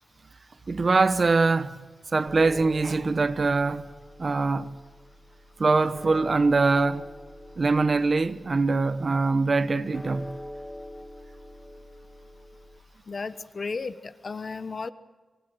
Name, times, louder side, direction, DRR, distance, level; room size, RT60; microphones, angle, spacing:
voice 1, 0.7-1.8 2.1-3.9 4.2-4.7 5.6-7.0 7.6-10.3, right 3 dB, 45° right, 1.0 m, -23 dB
sound 1, 2.3-12.8, left 1 dB, 10° left, 2.3 m, -44 dB
voice 2, 13.1-14.9, left 4 dB, 45° left, 1.1 m, -34 dB
26.5 x 19.5 x 7.9 m
wide cardioid pair, 125°, 0 cm